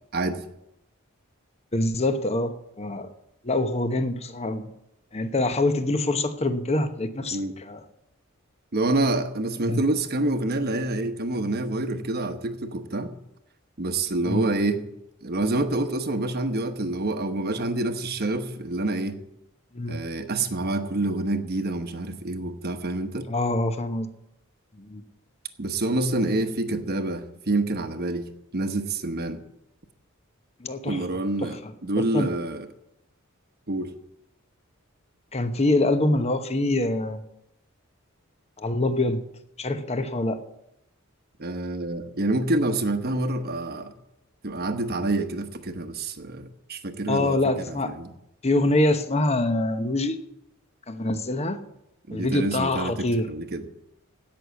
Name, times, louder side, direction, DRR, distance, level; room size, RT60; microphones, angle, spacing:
voice 1, 1.7-3.1 3.4-4.7 5.1-7.8 9.6-9.8 14.3-14.5 19.7-20.0 23.3-24.1 24.8-25.0 30.6-31.0 31.4-31.7 32.1-32.3 35.3-37.2 38.6-39.2 39.6-40.4 47.1-47.9 48.4-50.2 50.9-51.6 52.1-53.3, left 2 dB, 30° left, 9 dB, 1.0 m, -25 dB
voice 2, 8.7-13.1 13.8-14.8 15.2-19.2 19.9-23.3 25.6-29.4 30.9-32.7 33.7-33.9 41.4-43.9 44.4-48.1 52.1-53.6, right 2 dB, 50° right, 8 dB, 1.1 m, -27 dB
16.5 x 6.4 x 8.4 m, 0.84 s
head